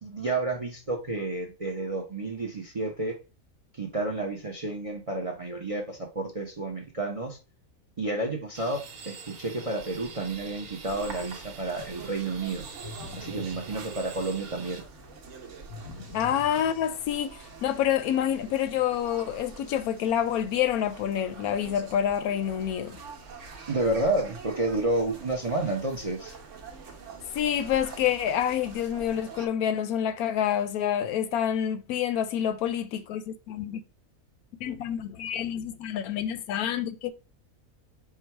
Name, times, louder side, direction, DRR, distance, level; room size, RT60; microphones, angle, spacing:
voice 1, 0.0-3.2 3.8-7.4 8.0-12.7 13.1-14.8 23.7-26.3, right 2 dB, 40° right, 0.5 m, -30 dB
sound 1, 8.5-14.8, right 5 dB, 75° right, 1.2 m, -45 dB
sound 2, 10.9-29.5, right 4 dB, 60° right, 1.1 m, -45 dB
sound 3, 12.8-14.6 15.7-17.4, left 4 dB, 60° left, 0.8 m, -44 dB
voice 2, 16.1-23.0 27.3-33.8 34.6-37.1, left 10 dB, 80° left, 1.1 m, -28 dB
4.7 x 2.2 x 4.4 m
omnidirectional pair, 1.6 m